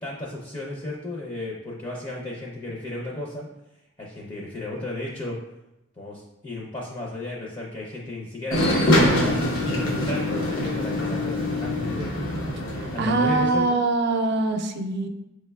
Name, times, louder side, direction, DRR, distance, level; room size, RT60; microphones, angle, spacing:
voice 1, 0.0-3.5 4.0-5.4 6.0-12.1 12.9-13.8, left 2 dB, 25° left, -3 dB, 0.5 m, -34 dB
sound 1, 8.5-13.5, left 1 dB, 85° left, 0.8 m, -24 dB
voice 2, 12.8-15.1, right 3 dB, 55° right, 5 dB, 0.4 m, -23 dB
5.5 x 3.2 x 2.2 m, 0.93 s
head